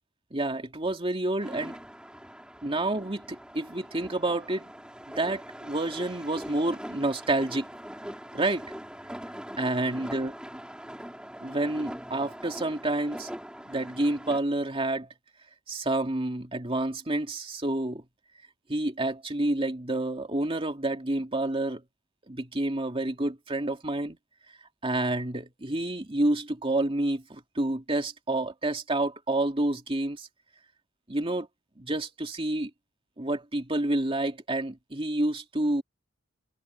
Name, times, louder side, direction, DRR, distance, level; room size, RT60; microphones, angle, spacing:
voice 1, 0.3-1.8 2.6-4.7 5.1-7.7 8.3-8.7 9.6-10.3 11.4-13.3 13.7-15.1 15.7-18.0 18.7-21.8 22.3-24.2 24.8-30.3 31.1-31.5 31.8-32.7 33.2-35.8, right 2 dB, 30° right, 2.5 m, -29 dB
sound 1, 1.4-14.4, equal, 5° right, 6.1 m, -42 dB
head